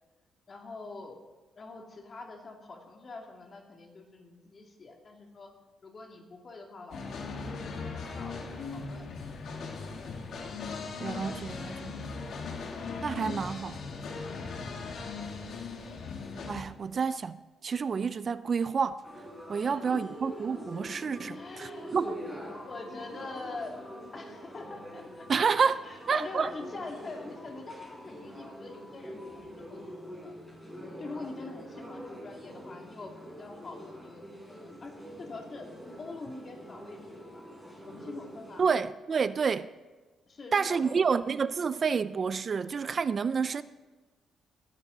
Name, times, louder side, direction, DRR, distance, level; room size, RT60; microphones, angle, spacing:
voice 1, 0.5-1.2 1.6-5.5 5.8-9.1 10.0-10.1 19.6-20.1 21.2-22.1 22.7-23.8 24.1-25.3 25.7-30.3 31.0-34.9 35.2-35.7 36.0-37.4 37.9-38.7 40.3-41.2 41.8-42.0, left 3 dB, 40° left, 2.4 m, -44 dB
sound 1, 6.9-16.6, left 4 dB, 70° left, 1.7 m, -38 dB
voice 2, 11.0-12.0 13.0-13.8 16.5-19.0 19.5-22.2 25.3-26.5 38.6-39.7 40.5-43.6, right 5 dB, 45° right, 0.4 m, -29 dB
sound 2, 19.0-38.7, equal, 5° left, 5.0 m, -45 dB
19.0 x 10.5 x 3.9 m
cardioid pair, 100°, 0 cm